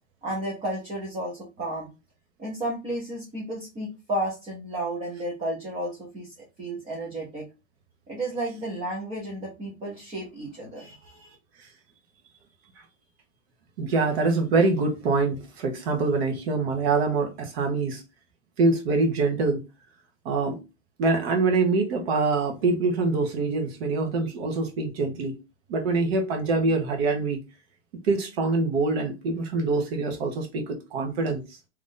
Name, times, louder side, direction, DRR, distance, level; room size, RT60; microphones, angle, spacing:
voice 1, 0.2-1.9 2.4-7.5 8.1-11.3, right 1 dB, 15° right, 0.8 m, -32 dB
voice 2, 13.8-18.0 18.6-19.6 20.2-20.6 21.0-25.4 25.7-27.4 28.1-31.4, right 3 dB, 50° right, 1.2 m, -24 dB
3.0 x 2.6 x 3.8 m
hypercardioid pair, 150°, 39 cm